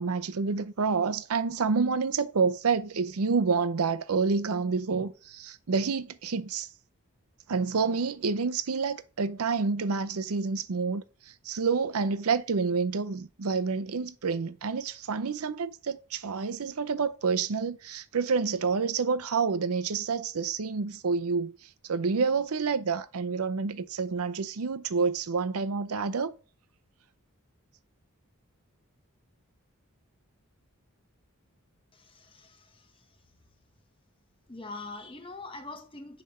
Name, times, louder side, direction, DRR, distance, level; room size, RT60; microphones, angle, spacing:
voice 1, 0.0-6.7 7.5-21.6 21.9-26.3, right 5 dB, 85° right, 0.6 m, -28 dB
voice 2, 31.9-32.9 34.5-36.2, left 3 dB, 25° left, 1.1 m, -43 dB
10.0 x 3.4 x 5.6 m
head